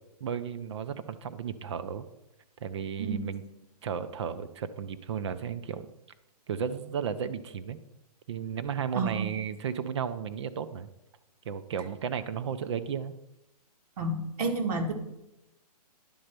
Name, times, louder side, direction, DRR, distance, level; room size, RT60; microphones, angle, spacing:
voice 1, 0.2-2.1 2.6-3.4 3.8-5.9 6.5-7.8 8.3-10.9 11.4-13.1, right 7 dB, 45° right, 12 dB, 0.5 m, -34 dB
voice 2, 8.9-9.3 14.0-14.9, right 3 dB, 70° right, 4 dB, 1.8 m, -30 dB
10.0 x 4.3 x 6.6 m, 0.92 s
hypercardioid pair, 160°, 21 cm